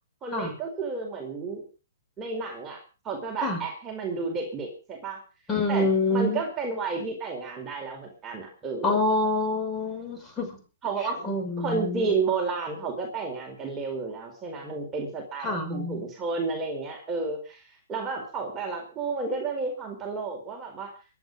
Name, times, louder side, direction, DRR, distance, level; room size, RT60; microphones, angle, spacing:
voice 1, 0.2-1.6 2.2-5.2 5.7-9.0 10.8-11.3 11.6-17.6 17.9-20.9, right 4 dB, 15° right, 1 dB, 4.4 m, -31 dB
voice 2, 5.5-6.4 8.8-10.6 11.2-12.1 15.4-16.0, left 2 dB, 15° left, 3 dB, 5.9 m, -26 dB
23.0 x 9.7 x 5.3 m, 0.36 s
hypercardioid pair, 150°, 0 cm